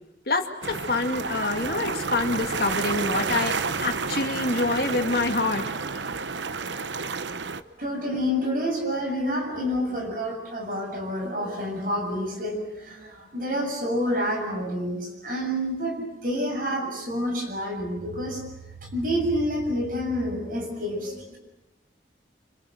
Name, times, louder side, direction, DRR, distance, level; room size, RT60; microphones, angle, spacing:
voice 1, 0.3-5.6, left 3 dB, 55° left, 5 dB, 2.2 m, -26 dB
sound 1, 0.6-7.6, right 4 dB, 85° right, 1.0 m, -30 dB
voice 2, 7.8-18.4 18.8-21.4, equal, 50° right, 2 dB, 7.1 m, -28 dB
26.5 x 26.0 x 8.0 m, 0.95 s
head